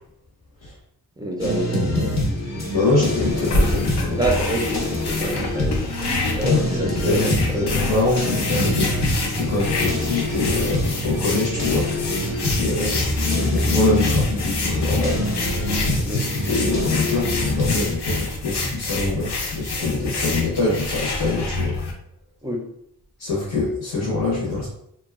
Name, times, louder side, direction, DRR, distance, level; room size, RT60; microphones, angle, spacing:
voice 1, 1.2-2.2 4.2-7.7 12.6-13.0 16.0-16.3 22.4-22.7, right 1 dB, 10° right, 1 dB, 0.5 m, -28 dB
sound 1, 1.4-17.9, left 1 dB, 45° left, 0.7 m, -25 dB
voice 2, 2.7-4.2 6.4-8.9 9.3-12.2 12.6-15.2 16.2-21.8 23.2-24.7, left 3 dB, 70° left, -5 dB, 0.9 m, -24 dB
sound 2, 3.3-21.9, left 2 dB, 90° left, 0.6 m, -27 dB
2.8 x 2.3 x 2.3 m, 0.73 s
cardioid pair, 65°, 39 cm